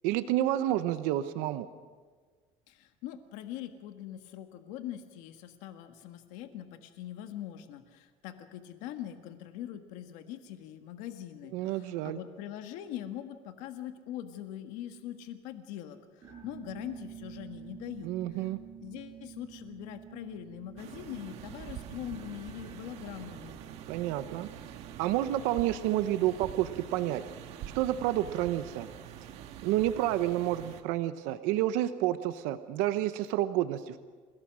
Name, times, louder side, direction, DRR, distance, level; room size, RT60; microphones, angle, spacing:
voice 1, 0.0-1.7 11.5-12.2 18.0-18.6 23.9-24.5 25.0-27.2 27.7-28.9 29.6-34.0, right 13 dB, 85° right, 11 dB, 1.0 m, -29 dB
voice 2, 2.7-18.5 18.8-23.5, left 11 dB, 75° left, 7 dB, 1.5 m, -42 dB
sound 1, 16.2-25.5, right 8 dB, 20° right, 6.6 m, -50 dB
sound 2, 20.8-30.8, right 10 dB, 55° right, 1.8 m, -45 dB
30.0 x 17.5 x 6.3 m, 1.5 s
cardioid pair, 175°, 13 cm